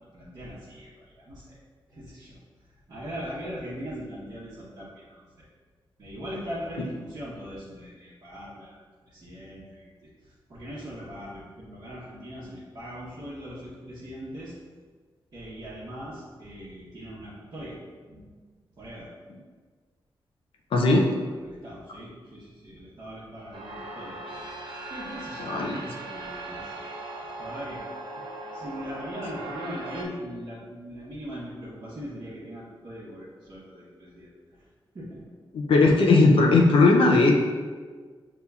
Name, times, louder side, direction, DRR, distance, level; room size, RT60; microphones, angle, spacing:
voice 1, 0.1-1.6 1.9-2.4 2.9-5.5 6.0-14.5 15.3-17.8 18.1-18.3 18.8-19.1 20.8-21.0 21.4-24.2 24.9-26.9 27.4-27.8 28.5-34.7 34.9-35.2, equal, 45° right, -10 dB, 0.9 m, -40 dB
voice 2, 20.7-21.1 25.5-25.8 35.5-37.3, left 3 dB, 75° left, 0 dB, 0.5 m, -18 dB
sound 1, 23.5-30.0, right 2 dB, 70° right, 0.6 m, -39 dB
6.6 x 2.9 x 2.3 m, 1.5 s
wide cardioid pair, 160°, 9 cm